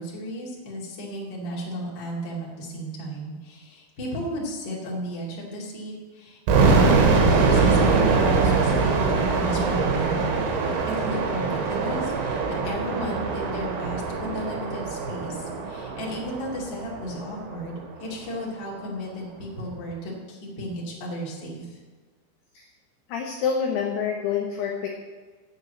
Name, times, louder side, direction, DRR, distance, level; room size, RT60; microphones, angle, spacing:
voice 1, 0.0-21.8, equal, 40° left, -4 dB, 1.8 m, -34 dB
sound 1, 6.5-17.4, right 4 dB, 85° right, 4.1 m, -23 dB
voice 2, 23.1-25.0, left 6 dB, 80° left, 1 dB, 2.3 m, -27 dB
8.7 x 7.3 x 7.5 m, 1.4 s
omnidirectional pair, 6.0 m